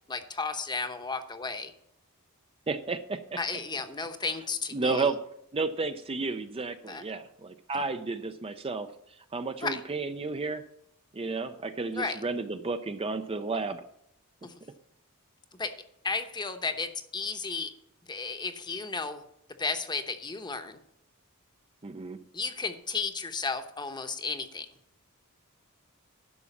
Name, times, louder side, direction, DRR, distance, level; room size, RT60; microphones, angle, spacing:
voice 1, 0.1-1.7 3.4-5.1 6.9-7.0 9.6-9.8 11.9-12.2 14.4-14.5 15.6-15.7 16.0-17.7 18.1-19.2 19.6-20.8 22.3-24.7, left 4 dB, 20° left, 8 dB, 0.9 m, -33 dB
voice 2, 2.7-3.4 4.7-5.2 5.5-8.9 9.3-10.6 11.1-13.8 21.8-22.2, right 3 dB, 25° right, 9 dB, 0.5 m, -32 dB
11.0 x 6.1 x 7.2 m, 0.78 s
head